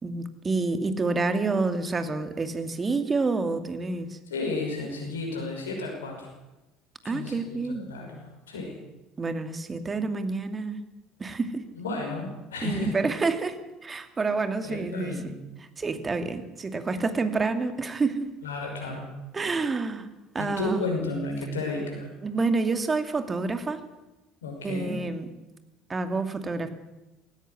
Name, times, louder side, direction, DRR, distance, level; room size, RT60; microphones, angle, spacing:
voice 1, 0.0-4.2 7.0-7.9 9.2-10.8 11.2-11.6 12.6-15.3 15.8-18.3 19.3-20.1 20.3-20.8 22.2-23.8 24.6-25.3 25.9-26.7, right 3 dB, 25° right, 8 dB, 2.5 m, -28 dB
voice 2, 4.3-6.3 7.0-8.7 11.8-12.9 14.6-15.3 18.4-19.1 20.4-22.1 24.4-25.0, left 2 dB, 80° left, 0 dB, 5.8 m, -32 dB
17.5 x 17.0 x 9.7 m, 0.99 s
figure-of-eight pair, 60°, 0 cm